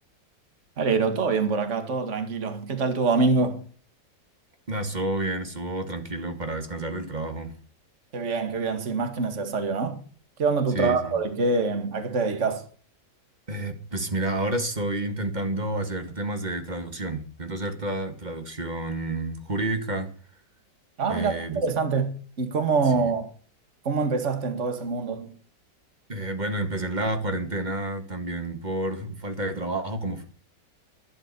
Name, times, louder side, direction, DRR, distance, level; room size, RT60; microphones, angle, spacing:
voice 1, 0.8-3.7 8.1-10.0 10.4-12.6 21.0-21.3 21.6-23.3 23.9-25.3, right 4 dB, 40° right, 2.2 m, -25 dB
voice 2, 4.7-7.5 10.7-11.2 13.5-20.1 21.1-21.6 22.9-23.1 26.1-30.2, right 1 dB, 25° right, 2.0 m, -30 dB
12.0 x 12.0 x 6.8 m
omnidirectional pair, 1.9 m